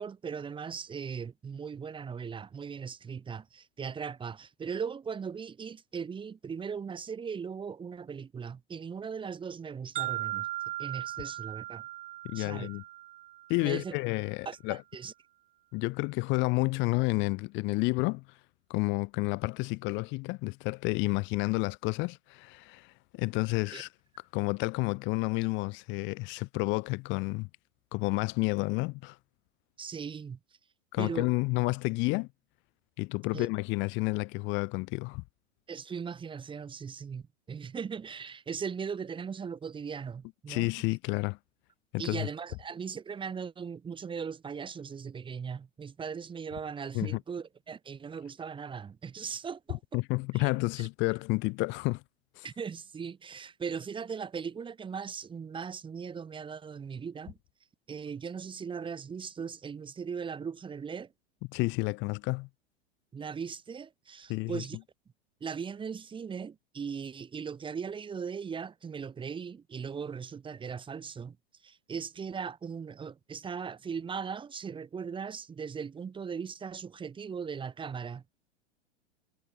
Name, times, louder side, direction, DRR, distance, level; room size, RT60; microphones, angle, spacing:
voice 1, 0.0-10.5 10.8-11.8 12.3-12.7 13.6-14.0 14.4-15.1 23.7-23.8 29.8-30.4 31.0-31.3 33.3-33.5 35.7-40.7 42.0-50.0 50.3-50.5 52.4-57.4 57.9-61.1 63.1-64.8 65.4-71.4 71.6-78.2, right 6 dB, 15° right, 2.7 m, -38 dB
sound 1, 10.0-13.9, right 16 dB, 50° right, 2.9 m, -38 dB
voice 2, 12.2-12.8 13.5-14.8 15.7-18.2 18.7-23.9 24.3-27.5 27.9-29.2 30.9-32.3 33.0-35.2 40.5-41.4 41.9-42.3 46.9-47.1 49.9-52.0 52.4-52.5 61.5-62.5 64.3-64.6, left 26 dB, 35° left, 1.9 m, -30 dB
figure-of-eight pair, 95°, 33 cm